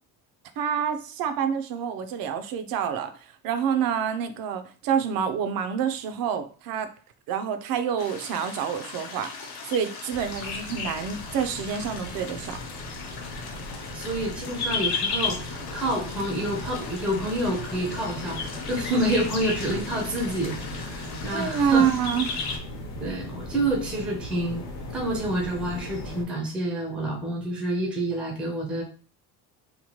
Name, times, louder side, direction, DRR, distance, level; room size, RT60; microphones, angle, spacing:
voice 1, 0.6-3.1 3.4-6.9 7.3-9.3 9.6-12.6 21.3-22.3, right 7 dB, 60° right, 9 dB, 0.5 m, -27 dB
sound 1, 8.0-22.6, left 4 dB, 75° left, 0.8 m, -35 dB
sound 2, 10.1-26.2, left 2 dB, 45° left, 0.6 m, -38 dB
voice 2, 13.9-21.9 23.0-24.7 24.9-28.8, right 1 dB, 5° right, 0 dB, 0.4 m, -28 dB
2.9 x 2.1 x 2.8 m, 0.39 s
cardioid pair, 160°, 40 cm